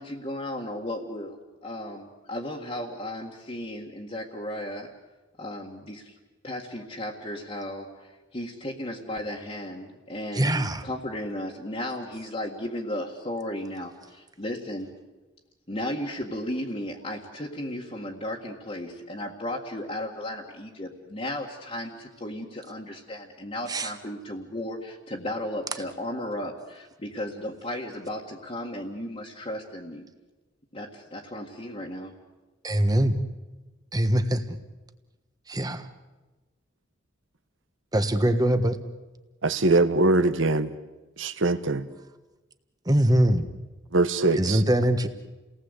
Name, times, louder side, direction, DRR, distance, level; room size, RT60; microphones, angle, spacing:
voice 1, 0.0-4.9 5.4-6.1 6.4-14.9 15.7-30.0 30.7-32.1, left 1 dB, 30° left, -4 dB, 1.9 m, -35 dB
voice 2, 10.3-10.8 23.7-23.9 32.6-33.2 33.9-34.6 35.5-35.9 37.9-38.8 42.8-43.5 44.4-45.1, right 1 dB, 20° right, 9 dB, 1.3 m, -22 dB
voice 3, 39.4-40.7 41.2-41.8 43.9-44.6, right 2 dB, 75° right, 11 dB, 1.2 m, -22 dB
30.0 x 18.5 x 8.2 m, 1.2 s
head